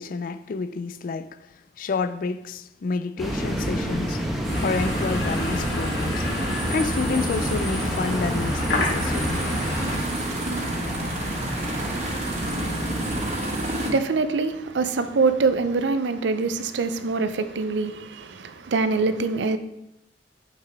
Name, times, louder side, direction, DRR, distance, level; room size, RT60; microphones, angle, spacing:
voice 1, 0.0-1.4 1.8-4.2 4.6-9.5, left 4 dB, 50° left, 0.3 m, -29 dB
sound 1, 3.2-13.3, equal, ahead, 0.9 m, -31 dB
sound 2, 4.4-13.9, right 1 dB, 35° right, 1.3 m, -30 dB
sound 3, 4.5-10.0, left 1 dB, 85° left, 1.5 m, -29 dB
voice 2, 13.3-19.6, right 4 dB, 75° right, 0.5 m, -24 dB
6.6 x 6.3 x 3.4 m
head